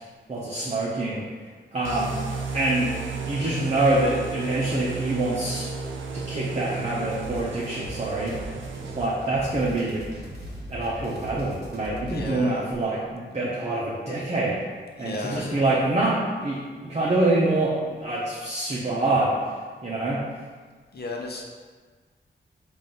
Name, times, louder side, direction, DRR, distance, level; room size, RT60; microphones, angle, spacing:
voice 1, 0.3-1.2 1.7-2.2 2.5-2.9 3.3-5.7 6.1-8.3 8.9-10.0 10.7-14.6 15.0-19.3 19.8-20.2, right 2 dB, 35° right, -7 dB, 0.7 m, -25 dB
sound 1, 1.8-9.5, right 4 dB, 75° right, 0.5 m, -34 dB
sound 2, 7.1-12.3, equal, 55° right, 0.9 m, -40 dB
voice 2, 12.0-12.7 15.0-15.5 20.9-21.5, left 2 dB, 55° left, 0 dB, 0.6 m, -33 dB
3.9 x 2.5 x 3.7 m, 1.5 s
cardioid pair, 70°, 20 cm